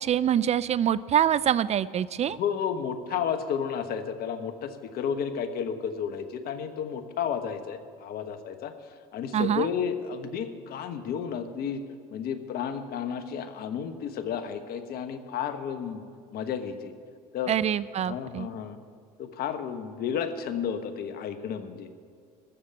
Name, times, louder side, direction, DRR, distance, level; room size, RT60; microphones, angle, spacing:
voice 1, 0.0-2.4 9.3-9.7 17.5-18.5, right 10 dB, 35° right, 18 dB, 0.4 m, -25 dB
voice 2, 2.3-8.7 9.1-11.8 12.1-16.0 16.3-16.9 17.3-17.5 18.0-18.8 19.2-21.9, left 7 dB, 55° left, 9 dB, 1.2 m, -32 dB
14.0 x 7.2 x 9.5 m, 2.2 s
hypercardioid pair, 75°, 19 cm